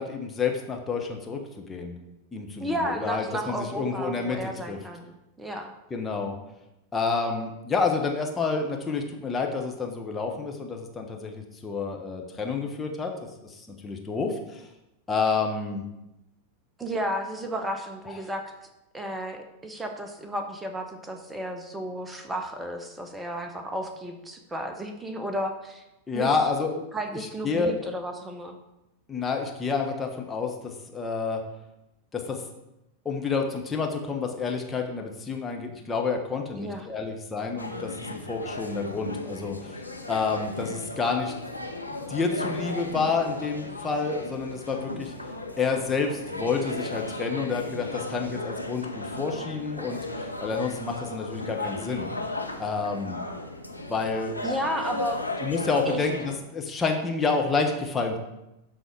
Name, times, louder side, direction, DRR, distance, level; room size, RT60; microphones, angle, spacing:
voice 1, 0.0-1.4 1.7-1.9 2.3-4.8 5.9-6.3 6.9-13.1 13.4-14.7 15.1-15.8 26.1-26.8 27.4-27.7 29.1-31.4 32.1-32.4 33.0-41.3 41.9-45.1 45.6-52.1 52.6-53.2 53.9-54.3 55.4-58.2, left 4 dB, 15° left, 2 dB, 1.3 m, -29 dB
voice 2, 2.6-5.7 16.8-18.4 18.9-25.8 26.1-26.4 26.9-28.6 36.6-36.9 54.4-55.2 55.9-56.0, right 1 dB, 10° right, 4 dB, 1.1 m, -33 dB
sound 1, 37.6-56.4, left 2 dB, 85° left, 0.8 m, -36 dB
12.5 x 4.1 x 4.8 m, 0.92 s
figure-of-eight pair, 90°, 0 cm